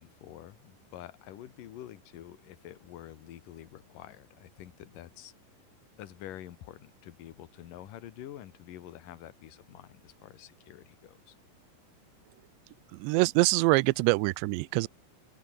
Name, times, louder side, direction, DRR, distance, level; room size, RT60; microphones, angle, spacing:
voice 1, 0.0-5.3 6.0-11.4, left 12 dB, 60° left, 2.3 m, -47 dB
voice 2, 12.9-14.9, right 23 dB, 80° right, 2.6 m, -25 dB
open air
omnidirectional pair, 5.8 m